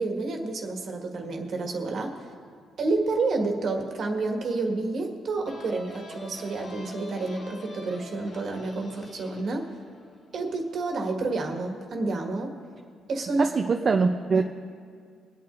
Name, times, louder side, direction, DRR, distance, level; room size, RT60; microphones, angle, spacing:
voice 1, 0.0-2.2 2.8-9.7 10.3-12.5 13.1-13.5 14.3-14.4, right 3 dB, 60° right, 2 dB, 1.6 m, -29 dB
sound 1, 5.4-10.9, left 1 dB, 55° left, 1.7 m, -45 dB
voice 2, 13.4-14.4, right 4 dB, 40° right, 4 dB, 0.5 m, -23 dB
24.0 x 8.6 x 2.5 m, 2.1 s
cardioid pair, 90°, 0 cm